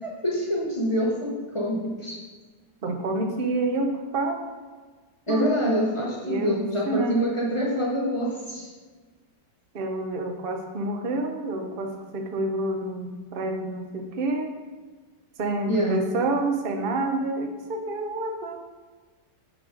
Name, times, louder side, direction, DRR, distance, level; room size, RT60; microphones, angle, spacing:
voice 1, 0.0-2.2 5.3-8.7 15.7-16.1, equal, 25° left, -4 dB, 0.6 m, -26 dB
voice 2, 2.8-4.4 5.3-5.6 6.2-6.6 6.9-7.2 9.7-14.5 15.4-18.6, right 2 dB, 50° right, 3 dB, 0.7 m, -28 dB
6.8 x 3.9 x 5.0 m, 1.4 s
omnidirectional pair, 1.9 m